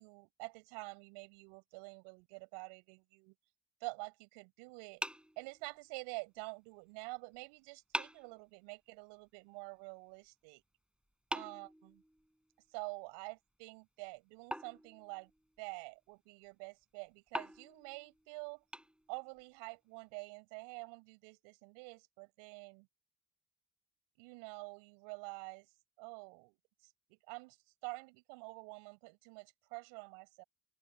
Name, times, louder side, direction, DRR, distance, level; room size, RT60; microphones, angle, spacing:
voice 1, 0.0-3.3 3.8-5.0 5.4-10.6 11.3-12.0 12.7-15.3 15.6-18.6 19.1-22.9 24.2-25.7 26.0-26.6 26.8-30.4, right 32 dB, 85° right, 6.9 m, -48 dB
sound 1, 5.0-6.1 7.3-7.4 7.9-8.4 11.3-12.5 14.5-15.6 17.3-19.4, equal, ahead, 7.9 m, -44 dB
open air
hypercardioid pair, 45°, 43 cm